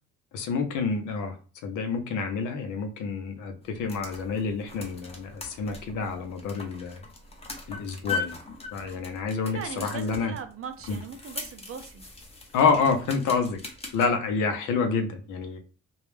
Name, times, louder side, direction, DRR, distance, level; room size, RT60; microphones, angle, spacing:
voice 1, 0.3-1.4 1.6-7.0 7.7-8.3 8.7-10.3 10.9-11.0 12.5-13.6 13.9-15.6, left 5 dB, 90° left, 5 dB, 0.6 m, -28 dB
sound 1, 3.6-14.1, left 4 dB, 20° left, 0.7 m, -40 dB
voice 2, 9.5-12.0, right 6 dB, 50° right, 8 dB, 0.5 m, -39 dB
2.3 x 2.0 x 3.1 m, 0.37 s
cardioid pair, 90°, 30 cm